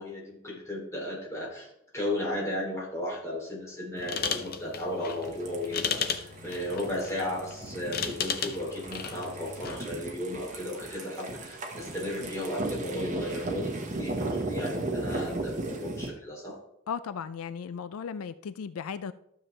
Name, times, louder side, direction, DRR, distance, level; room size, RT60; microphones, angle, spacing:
voice 1, 0.0-16.6, left 1 dB, 15° left, -3 dB, 2.9 m, -35 dB
sound 1, 4.0-9.9, left 6 dB, 45° left, 0.7 m, -35 dB
sound 2, 5.2-16.1, right 2 dB, 35° right, 1.3 m, -36 dB
voice 2, 16.9-19.1, left 6 dB, 85° left, 14 dB, 0.4 m, -36 dB
12.5 x 7.1 x 3.3 m, 0.79 s
head